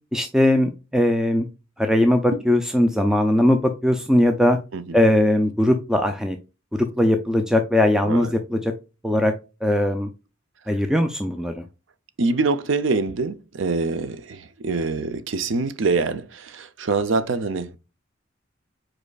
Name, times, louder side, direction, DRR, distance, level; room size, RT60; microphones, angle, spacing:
voice 1, 0.1-1.5 1.8-4.6 4.9-6.4 6.7-8.7 9.0-9.3 9.6-10.1 10.7-11.6, left 1 dB, 5° right, 0.4 m, -20 dB
voice 2, 12.2-17.8, right 3 dB, 70° right, 0.6 m, -25 dB
5.2 x 4.3 x 2.3 m
head